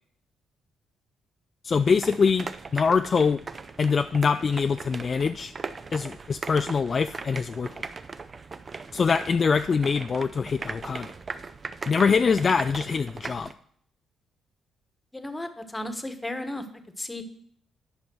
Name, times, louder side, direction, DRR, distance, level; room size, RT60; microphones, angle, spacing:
voice 1, 1.6-2.5 2.7-3.4 3.8-5.5 5.9-7.7 8.9-11.1 11.9-13.5, left 5 dB, 40° left, 9 dB, 0.3 m, -24 dB
sound 1, 1.7-13.5, right 4 dB, 35° right, 0.6 m, -39 dB
voice 2, 15.1-16.6 17.0-17.2, left 1 dB, 15° left, 9 dB, 1.2 m, -34 dB
10.5 x 5.4 x 6.1 m, 0.63 s
cardioid pair, 90°, 0 cm